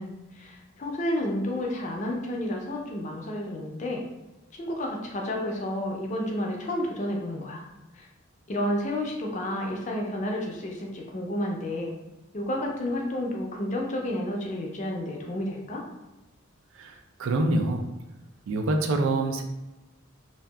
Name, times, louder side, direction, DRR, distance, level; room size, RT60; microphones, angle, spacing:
voice 1, 0.0-4.0 4.6-7.6 7.9-8.1 8.5-11.9 12.3-15.8, left 1 dB, 35° left, 0 dB, 0.4 m, -31 dB
voice 2, 16.8-17.9 18.5-19.4, right 2 dB, 80° right, 4 dB, 0.4 m, -26 dB
2.6 x 2.2 x 2.3 m, 1.1 s
head